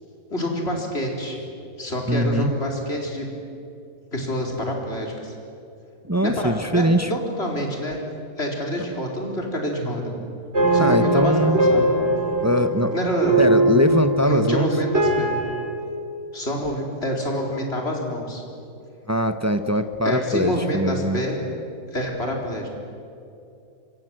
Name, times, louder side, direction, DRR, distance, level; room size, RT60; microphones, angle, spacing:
voice 1, 0.3-1.4 1.8-3.3 4.1-5.3 6.2-8.0 8.4-10.1 10.7-11.9 12.9-13.4 14.2-15.3 16.3-18.4 20.0-21.4 21.9-22.7, equal, 40° left, 0 dB, 4.5 m, -27 dB
voice 2, 2.1-2.5 6.0-7.1 10.8-11.6 12.4-12.9 13.4-14.7 19.1-21.2, equal, 15° right, 9 dB, 0.7 m, -22 dB
Emotional Piano Riff, 10.5-15.6, right 1 dB, 40° right, 4.2 m, -21 dB
26.5 x 24.5 x 7.8 m, 2.6 s
omnidirectional pair, 1.7 m